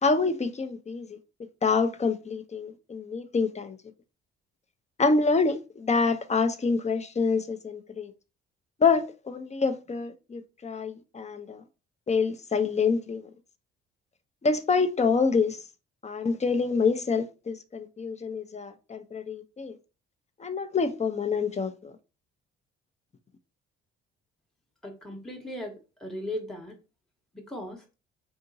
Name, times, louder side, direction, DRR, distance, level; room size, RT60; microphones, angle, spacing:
voice 1, 0.0-1.2 1.6-3.8 5.0-8.1 8.8-11.6 12.1-13.2 14.4-15.6 16.0-19.8 20.4-21.9, left 4 dB, 25° left, 0.6 m, -26 dB
voice 2, 24.8-26.7 27.3-27.8, left 1 dB, ahead, 1.0 m, -37 dB
3.7 x 2.7 x 2.6 m
hypercardioid pair, 50°, 29 cm